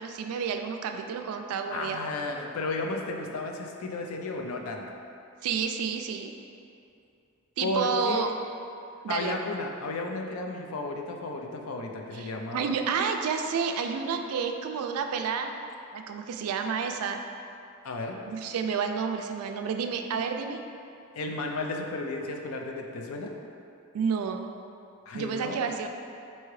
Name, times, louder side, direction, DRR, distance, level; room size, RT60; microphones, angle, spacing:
voice 1, 0.0-2.0 5.4-6.3 7.6-8.3 9.0-9.4 12.1-15.5 15.9-17.2 18.2-20.6 23.9-24.4 25.1-25.9, right 6 dB, 90° right, 6 dB, 0.3 m, -30 dB
voice 2, 1.7-4.9 7.6-8.2 9.1-12.7 17.8-18.2 21.1-23.3 25.1-25.6, left 2 dB, 80° left, 2 dB, 0.4 m, -33 dB
4.6 x 2.8 x 3.1 m, 2.6 s
head